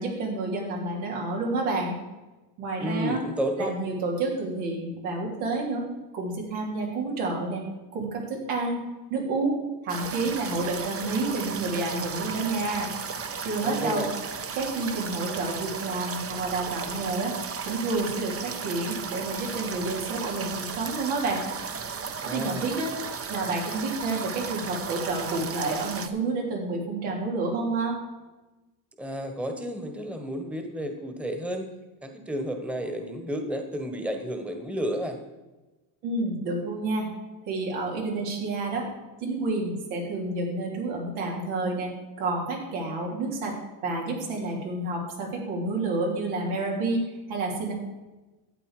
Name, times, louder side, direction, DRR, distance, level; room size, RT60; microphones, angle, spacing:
voice 1, 0.0-2.0 2.6-3.2 3.6-5.9 6.1-7.6 7.9-8.8 9.1-12.9 13.4-14.1 14.5-17.3 17.6-21.5 22.3-22.9 23.3-28.0 36.0-37.1 37.5-38.9 39.2-43.5 43.8-47.7, right 3 dB, 85° right, -1 dB, 3.5 m, -29 dB
voice 2, 2.8-3.7 13.6-14.1 22.2-22.7 29.0-31.7 32.0-35.2, equal, ahead, 5 dB, 1.3 m, -31 dB
sound 1, 9.9-26.1, right 6 dB, 30° right, 0.8 m, -35 dB
13.0 x 8.1 x 4.9 m, 1.1 s
cardioid pair, 115°, 49 cm